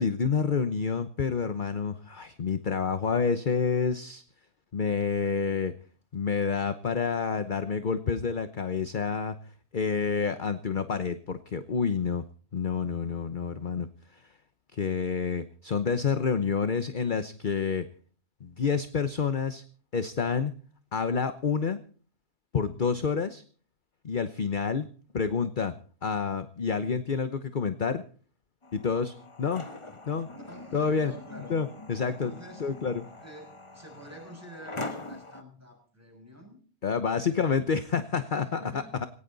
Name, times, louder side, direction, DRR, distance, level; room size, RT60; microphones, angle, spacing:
voice 1, 0.0-4.2 4.7-5.7 6.1-9.4 9.7-12.2 12.5-13.9 14.1-14.2 14.7-17.9 18.4-19.6 19.9-20.5 20.9-21.8 22.5-23.4 24.0-24.9 25.1-25.7 26.0-28.0 28.7-29.6 30.1-30.3 30.7-31.1 31.5-32.3 32.6-33.0 36.8-39.1, left 5 dB, 40° left, 11 dB, 0.9 m, -28 dB
sound 1, 28.6-35.4, left 2 dB, 20° left, 1.3 m, -43 dB
voice 2, 30.3-31.6 32.0-32.7 33.1-36.6 37.1-37.7 38.1-39.1, equal, 10° right, 3 dB, 6.4 m, -48 dB
18.5 x 18.0 x 4.0 m, 0.42 s
omnidirectional pair, 1.7 m